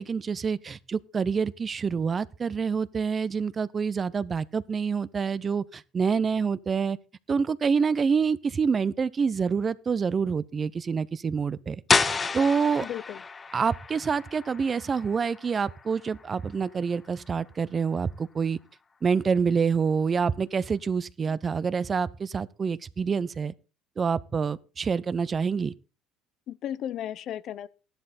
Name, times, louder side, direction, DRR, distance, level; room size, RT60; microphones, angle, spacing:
voice 1, 0.0-7.0 7.3-12.9 13.5-18.6 19.0-23.5 24.0-25.7, right 5 dB, 35° right, 0.7 m, -27 dB
sound 1, 11.9-17.5, left 4 dB, 30° left, 0.8 m, -31 dB
voice 2, 12.8-13.2 26.5-27.7, left 11 dB, 60° left, 0.7 m, -34 dB
13.0 x 11.5 x 4.2 m
supercardioid pair, 80°, 0 cm